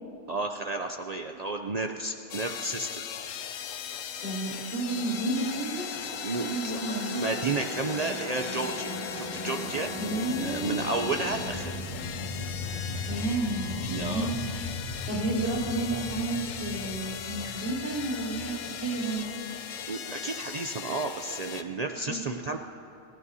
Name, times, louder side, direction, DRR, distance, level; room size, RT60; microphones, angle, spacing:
voice 1, 0.3-3.0 6.2-9.9 10.4-11.7 13.9-14.3 19.9-22.6, right 3 dB, 80° right, 4 dB, 0.3 m, -32 dB
sound 1, 2.3-21.6, left 8 dB, 70° left, 1.0 m, -39 dB
sound 2, 4.0-19.2, left 2 dB, 30° left, 2.5 m, -38 dB
voice 2, 4.2-5.9 6.4-7.2 10.0-10.8 13.0-14.3 15.1-19.2 21.7-22.2, right 2 dB, 50° right, -6 dB, 4.2 m, -31 dB
29.5 x 15.5 x 2.8 m, 2.8 s
omnidirectional pair, 1.4 m